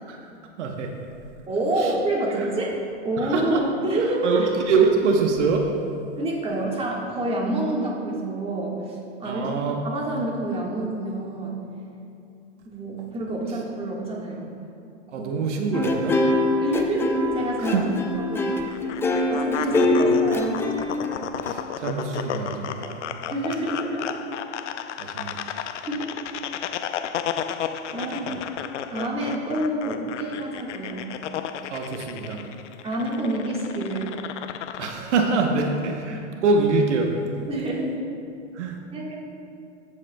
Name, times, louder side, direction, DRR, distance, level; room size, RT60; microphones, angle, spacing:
voice 1, 0.6-0.9 1.8-1.9 2.4-2.5 3.2-3.6 4.2-5.7 9.2-9.8 15.1-16.2 17.6-17.9 19.7-20.1 21.4-23.1 25.0-25.4 28.3-28.4 31.7-32.4 34.8-37.1 38.5-38.8, right 4 dB, 80° right, 2 dB, 1.1 m, -24 dB
voice 2, 1.5-2.8 3.0-4.4 6.2-9.5 9.8-11.6 12.6-14.5 15.2-15.3 16.6-17.9 18.3-18.5 19.3-20.5 23.3-24.2 25.8-26.1 27.9-28.2 28.9-31.1 32.8-34.1 37.5-38.0 38.9-39.2, right 1 dB, 15° right, -3 dB, 1.6 m, -27 dB
sound 1, 15.7-21.5, left 2 dB, 5° left, 0.4 m, -23 dB
sound 2, 18.7-34.9, left 9 dB, 85° left, 0.6 m, -33 dB
14.0 x 8.3 x 2.3 m, 2.6 s
hypercardioid pair, 120°, 35 cm